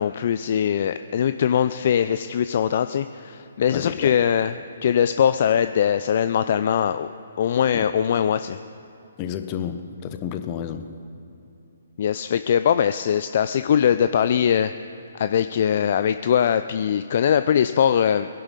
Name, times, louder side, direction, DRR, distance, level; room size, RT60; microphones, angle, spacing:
voice 1, 0.0-4.5 4.8-7.1 7.4-8.6 12.0-14.7 15.1-18.3, left 8 dB, 50° left, 11 dB, 0.4 m, -21 dB
voice 2, 3.7-4.2 7.7-7.9 9.2-10.9, left 9 dB, 30° left, 9 dB, 0.9 m, -31 dB
22.0 x 11.5 x 4.1 m, 2.8 s
figure-of-eight pair, 135°, 0 cm